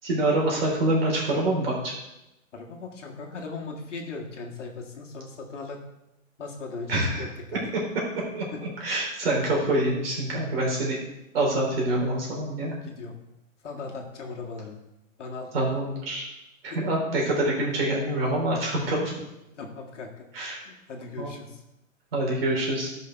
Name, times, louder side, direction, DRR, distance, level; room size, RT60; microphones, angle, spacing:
voice 1, 0.0-1.9 6.9-7.2 8.3-8.4 8.8-11.0 11.3-12.7 15.5-16.2 16.6-19.1 20.3-20.6 21.2-21.3 22.1-23.0, right 1 dB, 45° right, -3 dB, 3.6 m, -26 dB
voice 2, 2.5-5.8 6.4-7.7 8.5-8.6 12.7-13.2 13.6-14.8 15.2-15.5 16.7-16.8 19.5-20.3 20.6-21.6, left 4 dB, 60° left, 1 dB, 1.9 m, -38 dB
13.0 x 5.7 x 4.6 m, 0.91 s
hypercardioid pair, 170°, 41 cm